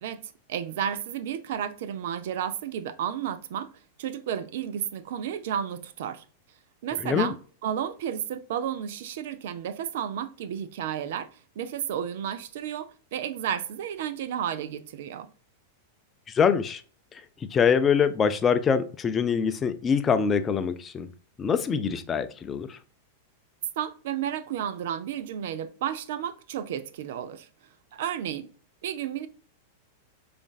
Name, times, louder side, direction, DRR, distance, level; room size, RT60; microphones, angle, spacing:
voice 1, 0.0-3.7 4.0-6.2 6.8-7.4 7.6-11.3 11.6-15.3 23.8-27.5 27.9-28.5 28.8-29.3, right 9 dB, 65° right, 0.4 m, -32 dB
voice 2, 7.0-7.3 16.3-16.8 17.1-17.2 17.5-21.1 21.4-22.8, left 6 dB, 25° left, 0.4 m, -24 dB
5.0 x 2.5 x 2.3 m
hypercardioid pair, 105°, 0 cm